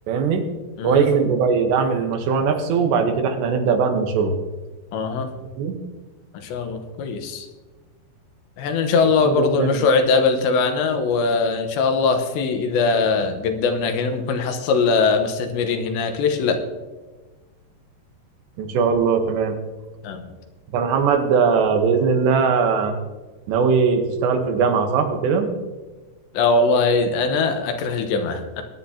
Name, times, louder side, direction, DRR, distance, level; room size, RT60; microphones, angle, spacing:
voice 1, 0.1-0.5 0.8-4.4 5.6-5.8 9.2-9.8 18.6-19.6 20.7-22.9 23.5-25.5, right 5 dB, 80° right, 5 dB, 3.3 m, -20 dB
voice 2, 4.9-5.3 6.3-7.5 8.6-16.6 20.0-20.2 26.3-28.6, left 4 dB, 85° left, 6 dB, 3.3 m, -21 dB
20.5 x 10.0 x 2.8 m, 1.2 s
omnidirectional pair, 5.0 m